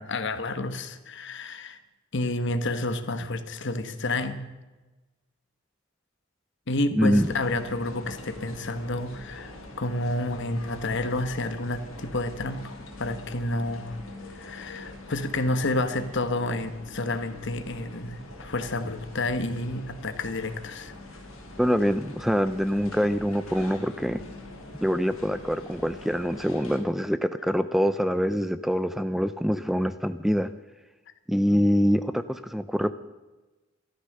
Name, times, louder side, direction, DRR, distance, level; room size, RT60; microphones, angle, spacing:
voice 1, 0.0-1.8 2.1-4.4 6.7-14.0 14.3-20.9, left 2 dB, 60° left, 10 dB, 1.3 m, -30 dB
voice 2, 6.9-7.3 21.6-24.2 24.8-30.5 31.3-32.9, equal, ahead, 12 dB, 0.4 m, -25 dB
sound 1, 7.1-26.8, left 2 dB, 90° left, 3.0 m, -44 dB
15.0 x 13.0 x 6.7 m, 1.2 s
head